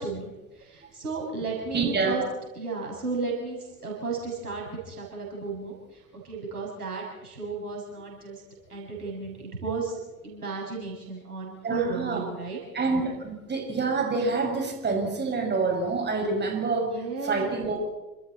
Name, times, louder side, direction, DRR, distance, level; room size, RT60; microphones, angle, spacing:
voice 1, 0.0-2.2 2.6-8.4 8.7-10.0 10.2-12.6 16.8-17.7, right 4 dB, 85° right, -2 dB, 7.2 m, -34 dB
voice 2, 1.7-2.2 11.6-12.2 12.7-17.8, right 4 dB, 25° right, 1 dB, 6.7 m, -27 dB
30.0 x 27.0 x 4.4 m, 1.1 s
figure-of-eight pair, 75°, 44 cm